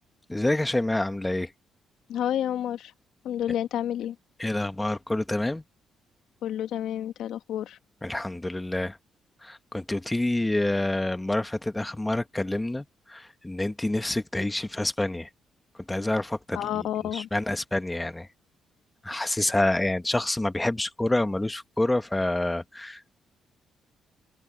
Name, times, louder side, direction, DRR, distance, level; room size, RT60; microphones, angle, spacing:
voice 1, 0.3-1.5 4.4-5.6 8.0-9.0 9.4-15.3 15.9-16.8 17.1-18.3 19.0-23.1, left 1 dB, 10° left, 1.4 m, -27 dB
voice 2, 2.1-2.9 3.2-4.2 6.4-7.8 16.5-17.3, left 11 dB, 80° left, 1.9 m, -30 dB
cardioid pair, 90°, 0 cm